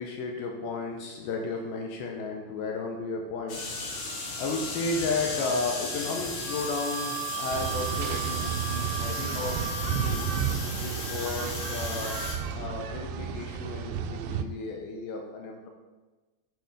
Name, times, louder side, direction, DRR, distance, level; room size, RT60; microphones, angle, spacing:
voice 1, 0.0-10.2 10.8-12.2 12.5-15.7, left 3 dB, 80° left, 1 dB, 2.4 m, -34 dB
sound 1, 3.5-12.3, left 3 dB, 55° left, 2.4 m, -36 dB
Wind instrument woodwind instrument, 6.4-10.5, right 7 dB, 45° right, 1.4 m, -36 dB
sound 2, 7.5-14.4, right 8 dB, 80° right, 2.5 m, -32 dB
10.5 x 4.8 x 4.8 m, 1.2 s
omnidirectional pair, 4.8 m